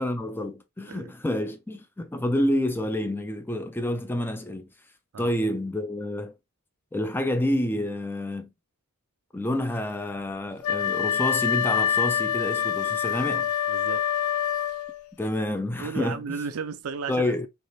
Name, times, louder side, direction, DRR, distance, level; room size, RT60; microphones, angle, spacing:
voice 1, 0.0-4.7 5.2-6.3 6.9-8.5 9.3-13.5 15.2-16.4 17.1-17.5, left 1 dB, 10° left, 0.4 m, -28 dB
Wind instrument woodwind instrument, 10.6-15.1, left 9 dB, 75° left, 0.4 m, -26 dB
voice 2, 13.2-14.0 15.8-17.3, right 5 dB, 80° right, 0.5 m, -34 dB
3.4 x 3.1 x 2.7 m
head